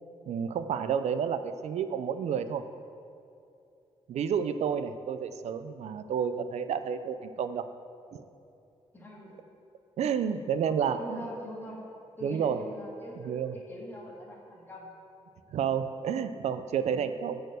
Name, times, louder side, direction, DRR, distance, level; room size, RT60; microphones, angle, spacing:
voice 1, 0.3-2.6 4.1-7.7 8.1-8.2 10.0-11.2 12.2-12.7 13.2-13.6 15.5-17.4, right 7 dB, 75° right, 11 dB, 0.4 m, -30 dB
voice 2, 8.9-9.4 10.7-11.8 12.2-14.9 16.8-17.0, equal, 20° left, -4 dB, 1.5 m, -43 dB
8.3 x 4.4 x 6.4 m, 2.6 s
wide cardioid pair, 170°, 11 cm